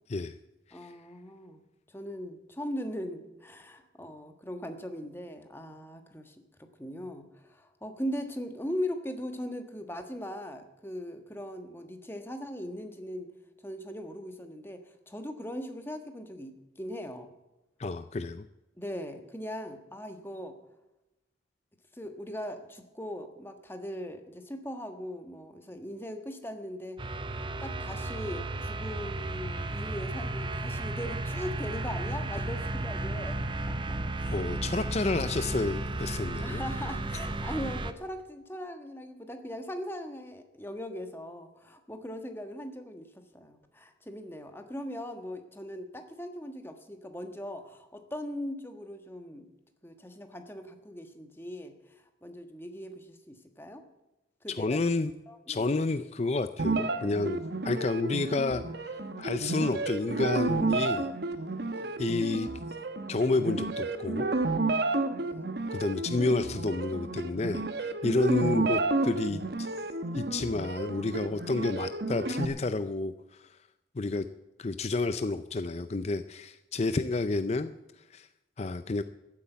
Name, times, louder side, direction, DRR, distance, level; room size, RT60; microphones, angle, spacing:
voice 1, 0.7-1.6 1.9-13.3 13.6-17.3 18.8-20.6 21.9-27.0 27.6-33.4 33.7-34.4 36.4-49.5 49.8-53.8 54.4-54.9 55.3-55.7 61.7-62.0 65.2-65.5, equal, 10° left, 6 dB, 1.4 m, -40 dB
voice 2, 17.8-18.5 34.3-36.6 54.6-55.1 55.5-57.4 57.6-58.9 59.2-61.1 62.0-62.5 63.1-64.3 65.7-69.7 70.1-73.5 74.0-74.3 74.6-77.7 78.1-78.3 78.6-79.0, left 3 dB, 35° left, 10 dB, 0.5 m, -30 dB
sound 1, 27.0-37.9, right 2 dB, 25° right, 0.7 m, -34 dB
sound 2, 56.6-72.4, right 2 dB, 60° right, 1.1 m, -31 dB
14.5 x 8.4 x 9.1 m, 0.96 s
head